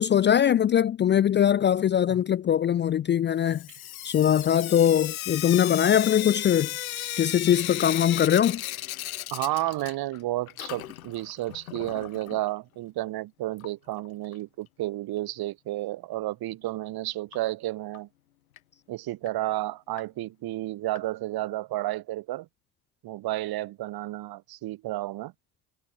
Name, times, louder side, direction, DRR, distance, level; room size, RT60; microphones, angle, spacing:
voice 1, 0.0-3.6 4.0-6.7 7.2-8.6, left 9 dB, 25° left, 0.4 m, -22 dB
Sink (filling or washing) / Drip, 3.4-10.2 10.5-12.4 13.6-13.7 14.0-14.1 14.3-14.4 17.3-17.4 17.9-18.0 18.6-18.7 19.3-19.4 20.0-20.1 20.9-21.0, left 13 dB, 90° left, 1.5 m, -35 dB
voice 2, 9.3-18.1 18.9-22.5 23.0-25.3, right 16 dB, 60° right, 3.2 m, -32 dB
hypercardioid pair, 60°, 41 cm